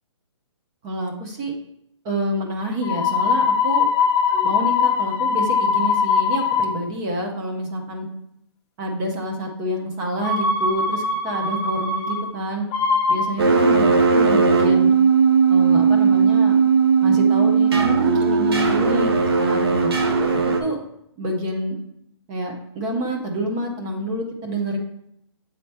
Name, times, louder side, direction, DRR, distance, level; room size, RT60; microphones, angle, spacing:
voice 1, 0.8-1.5 2.0-3.9 4.3-8.1 8.8-12.7 13.1-14.9 15.5-16.6 17.0-19.9 20.6-20.8 21.2-21.8 22.3-24.8, equal, 10° right, 2 dB, 0.4 m, -27 dB
sound 1, 2.8-6.7 10.2-12.2 12.7-13.3, left 5 dB, 20° left, 0.7 m, -21 dB
sound 2, 13.4-20.6, right 5 dB, 55° right, 0.8 m, -17 dB
7.4 x 4.1 x 3.3 m, 0.75 s
hypercardioid pair, 170°, 15 cm